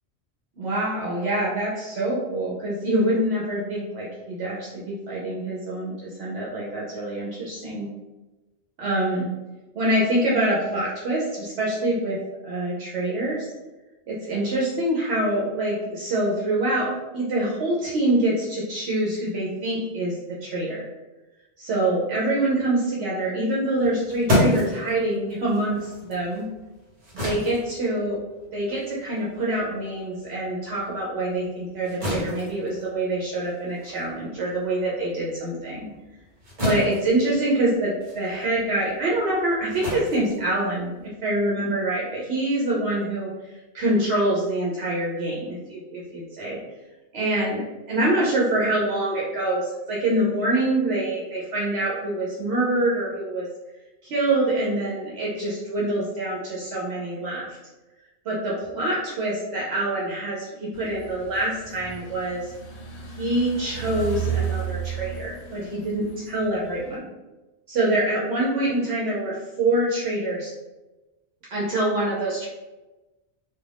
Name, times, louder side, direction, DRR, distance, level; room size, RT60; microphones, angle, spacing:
voice 1, 0.6-7.9 8.8-9.3 9.7-12.2 12.4-13.5 14.1-20.8 21.6-26.5 27.2-28.2 28.5-35.9 36.6-43.3 43.7-46.6 47.1-53.5 54.0-57.5 58.2-62.5 63.2-67.1 67.7-70.5 71.5-72.5, right 1 dB, 75° right, -5 dB, 0.9 m, -25 dB
sound 1, 23.7-30.5 30.9-41.1, left 1 dB, 50° right, 1.1 m, -31 dB
sound 2, 60.7-67.0, right 7 dB, 75° left, 0.8 m, -33 dB
2.4 x 2.3 x 3.3 m, 1.1 s
omnidirectional pair, 1.1 m